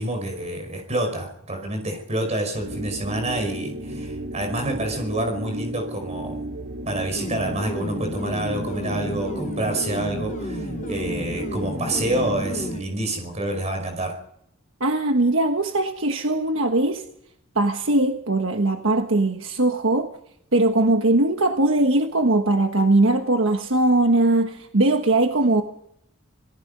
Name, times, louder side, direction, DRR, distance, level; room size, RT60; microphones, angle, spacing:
voice 1, 0.0-6.4 6.9-14.1, right 1 dB, 30° right, 4 dB, 5.3 m, -28 dB
sound 1, 2.5-12.9, right 1 dB, 85° right, 4.6 m, -34 dB
sound 2, 7.1-12.8, left 1 dB, 35° left, 1.0 m, -32 dB
voice 2, 14.8-17.0 17.5-20.1 20.5-25.6, right 2 dB, 60° right, 4 dB, 1.4 m, -20 dB
27.5 x 18.5 x 5.5 m, 0.76 s
head